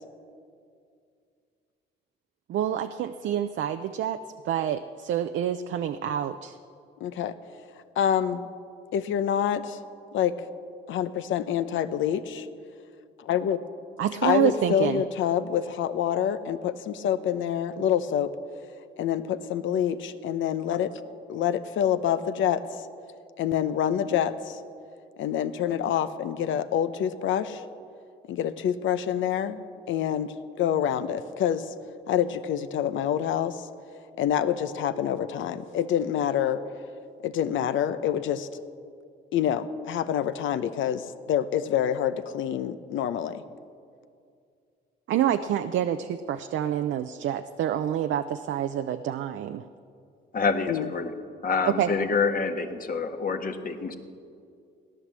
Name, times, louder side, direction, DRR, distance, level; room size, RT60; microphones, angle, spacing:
voice 1, 2.5-4.2 4.4-6.5 14.0-15.0 45.1-49.6 51.8-51.9, right 10 dB, 70° right, 8 dB, 0.6 m, -27 dB
voice 2, 7.0-7.3 8.0-8.5 8.9-9.8 10.1-10.5 10.9-12.5 13.2-13.6 14.2-18.3 19.0-20.9 21.3-22.6 23.4-24.6 25.2-27.6 28.3-29.6 29.9-31.7 32.1-33.7 34.2-36.6 37.2-38.6 39.3-43.4 50.7-50.9, left 9 dB, 80° left, 12 dB, 0.8 m, -26 dB
voice 3, 50.3-51.1 51.4-54.0, left 4 dB, 45° left, 5 dB, 1.5 m, -27 dB
17.0 x 11.0 x 7.5 m, 2.3 s
cardioid pair, 90°, 20 cm